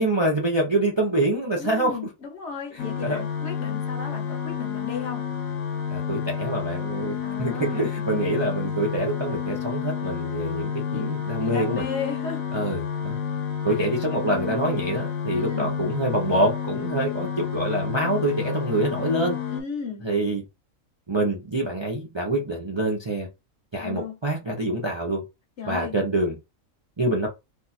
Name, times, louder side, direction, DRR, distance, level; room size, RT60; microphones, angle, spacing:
voice 1, 0.0-2.0 3.0-3.2 5.9-11.8 12.5-13.2 13.6-19.4 20.0-20.4 21.1-23.3 23.7-25.2 25.6-26.3 27.0-27.3, right 1 dB, 30° right, 0.5 m, -26 dB
voice 2, 1.6-5.3 7.2-8.7 10.9-12.4 15.3-15.8 19.5-20.1 23.8-24.2 25.6-25.9, left 5 dB, 60° left, 1.1 m, -35 dB
sound 1, 2.8-19.6, left 7 dB, 90° left, 1.2 m, -30 dB
2.7 x 2.4 x 4.1 m
omnidirectional pair, 1.4 m